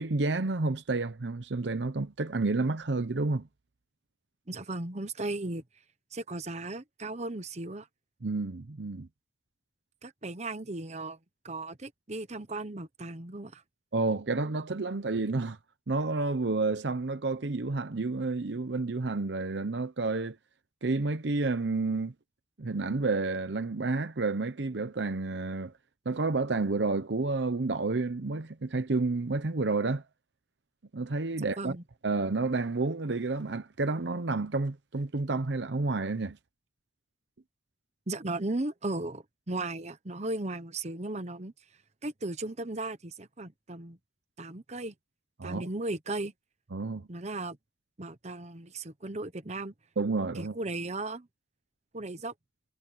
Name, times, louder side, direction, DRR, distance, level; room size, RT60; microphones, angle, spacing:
voice 1, 0.0-3.5 8.2-9.1 13.9-15.6 15.9-20.4 20.8-22.1 22.6-25.7 26.0-30.0 30.9-31.8 32.0-36.4 45.4-45.7 46.7-47.1 50.0-50.6, right 3 dB, 70° right, 0.8 m, -30 dB
voice 2, 4.5-5.6 6.1-7.9 10.0-11.2 11.4-13.6 31.6-31.8 38.1-41.5 42.0-44.0 44.4-44.9 45.4-46.3 47.1-47.6 48.0-49.7 50.3-51.3 51.9-52.3, right 2 dB, 40° right, 1.1 m, -36 dB
head